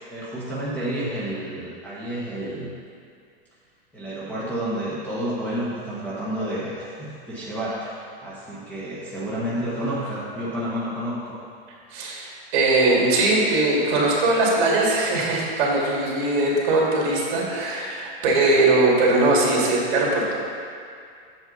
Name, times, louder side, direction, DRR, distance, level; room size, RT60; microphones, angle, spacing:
voice 1, 0.1-2.7 3.9-11.3, right 1 dB, 5° left, -10 dB, 1.2 m, -30 dB
voice 2, 11.9-20.4, right 2 dB, 50° right, -3 dB, 2.3 m, -20 dB
7.9 x 7.3 x 4.0 m, 2.3 s
supercardioid pair, 160°, 32 cm